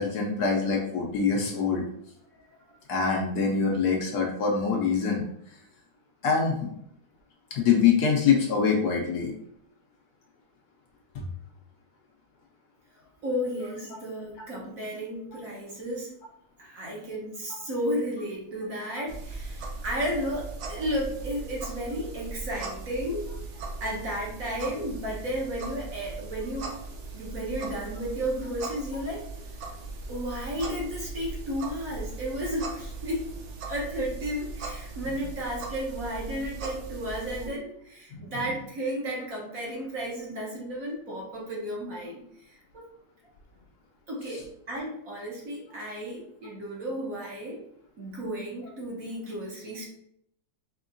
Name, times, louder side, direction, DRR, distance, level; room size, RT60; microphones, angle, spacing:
voice 1, 0.0-1.8 2.9-5.6 6.2-6.7 7.5-9.3 11.1-11.2 17.5-17.6 18.9-19.0 38.1-38.2 44.3-44.4, left 6 dB, 70° left, 0 dB, 1.1 m, -25 dB
voice 2, 13.2-16.1 16.6-23.3 23.8-26.8 27.1-29.2 30.1-33.2 33.7-42.8 44.1-47.6 48.0-49.9, equal, 55° right, -4 dB, 1.2 m, -33 dB
sound 1, 19.1-37.5, right 3 dB, 80° right, 0.6 m, -39 dB
4.4 x 2.9 x 2.5 m, 0.74 s
omnidirectional pair, 2.0 m